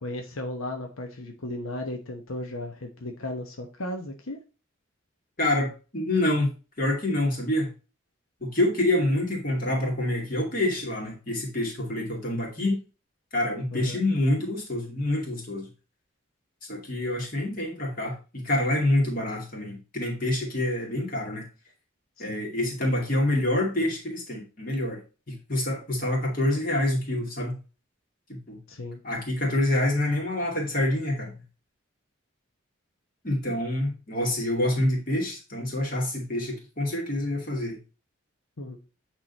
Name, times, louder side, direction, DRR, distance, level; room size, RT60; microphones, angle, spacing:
voice 1, 0.0-4.4 13.7-14.0 22.2-22.4 28.7-29.0 38.6-38.8, left 1 dB, 85° left, 4 dB, 1.0 m, -35 dB
voice 2, 5.4-6.5 6.8-7.7 8.4-12.8 13.3-15.7 16.7-21.5 22.2-25.0 25.3-27.6 28.3-28.6 29.0-31.4 33.2-37.8, left 1 dB, 40° left, -1 dB, 2.5 m, -27 dB
8.9 x 3.8 x 4.0 m, 0.32 s
head